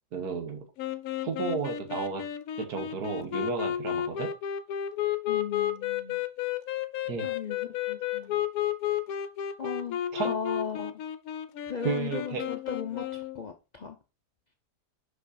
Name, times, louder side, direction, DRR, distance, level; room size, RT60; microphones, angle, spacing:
voice 1, 0.1-0.6 1.2-2.3 2.6-4.3 7.1-7.3 10.1-10.3 11.8-12.4, right 5 dB, 75° right, 4 dB, 1.8 m, -32 dB
Sax Alto - C minor, 0.8-13.4, left 11 dB, 70° left, 1.0 m, -32 dB
voice 2, 5.3-6.2 7.2-7.6 7.9-8.4 9.6-10.9 11.7-14.0, left 7 dB, 85° left, 5 dB, 0.3 m, -37 dB
5.4 x 5.3 x 4.2 m, 0.29 s
omnidirectional pair, 1.7 m